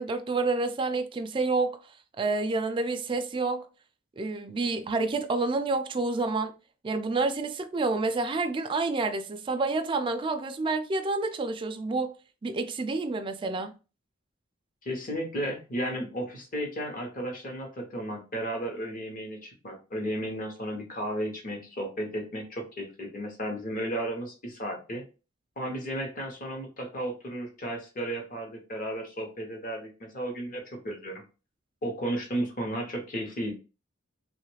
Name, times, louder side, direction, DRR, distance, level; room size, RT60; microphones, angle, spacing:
voice 1, 0.0-1.8 2.2-3.7 4.2-6.5 6.8-12.1 12.4-13.7, right 3 dB, 25° right, 0.3 m, -28 dB
voice 2, 14.8-25.0 25.6-31.2 31.8-33.5, right 1 dB, 40° left, 0.9 m, -34 dB
3.0 x 2.4 x 3.1 m
head